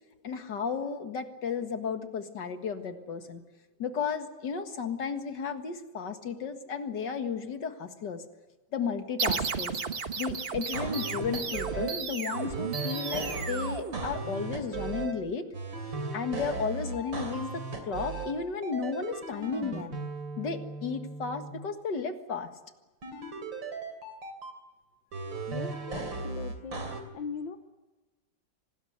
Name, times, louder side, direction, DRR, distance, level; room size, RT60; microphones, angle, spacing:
voice 1, 0.2-3.4 3.8-8.2 8.7-9.7 10.2-15.5 16.1-20.0 20.4-22.5 25.9-26.0, left 6 dB, 65° left, 7 dB, 2.4 m, -34 dB
sound 1, 9.2-14.6, right 5 dB, 35° right, 1.2 m, -34 dB
sound 2, 10.7-11.9 12.3-15.1 15.5-18.3 18.6-21.5 23.0-24.5 25.1-27.0, right 4 dB, 75° right, 3.8 m, -37 dB
voice 2, 25.5-26.8 27.1-27.6, left 6 dB, 80° left, 7 dB, 1.8 m, -39 dB
26.0 x 19.5 x 8.0 m, 1.2 s
omnidirectional pair, 2.1 m